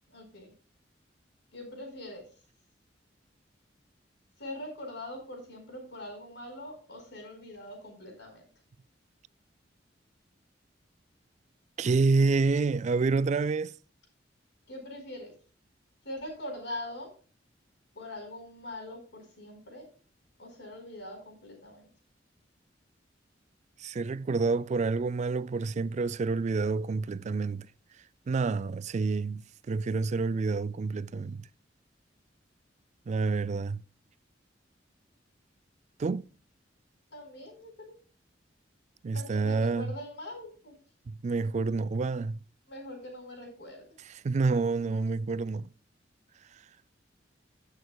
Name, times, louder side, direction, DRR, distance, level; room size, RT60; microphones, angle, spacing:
voice 1, 0.1-0.5 1.5-2.3 4.4-8.4 14.7-15.3 16.0-17.1 17.9-19.9 20.4-21.9 37.1-37.9 39.1-40.8 42.7-43.8, left 1 dB, 65° left, 4.4 m, -42 dB
voice 2, 11.8-13.7 23.8-27.7 28.3-29.4 29.7-31.4 33.1-33.8 36.0-36.2 39.0-39.9 41.1-42.4 44.2-45.7, right 4 dB, 40° right, 0.3 m, -28 dB
17.0 x 6.5 x 2.3 m
head